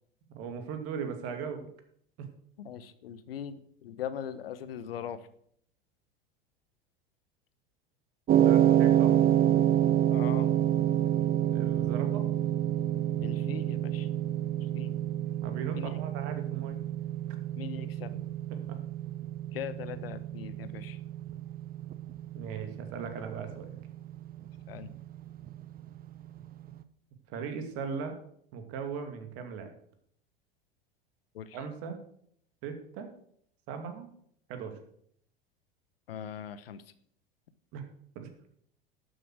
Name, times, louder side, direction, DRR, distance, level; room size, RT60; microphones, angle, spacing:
voice 1, 0.3-1.7 8.4-9.2 11.5-12.2 15.4-16.8 17.3-17.4 18.5-18.6 22.3-23.8 27.3-28.2 28.5-29.7 31.5-32.0 32.6-33.1 33.7-34.1 34.5-34.8 37.7-37.9 38.2-38.3, right 6 dB, 55° right, 6 dB, 2.4 m, -38 dB
voice 2, 2.6-5.3 10.1-10.6 13.2-14.1 14.7-14.9 15.7-16.0 17.6-18.1 19.5-21.0 24.7-25.0 31.3-31.6 36.1-36.8, left 9 dB, 75° left, 14 dB, 1.1 m, -40 dB
sound 1, 8.3-26.5, right 11 dB, 30° right, 0.8 m, -28 dB
12.0 x 7.6 x 6.2 m, 0.66 s
hypercardioid pair, 85°, 29 cm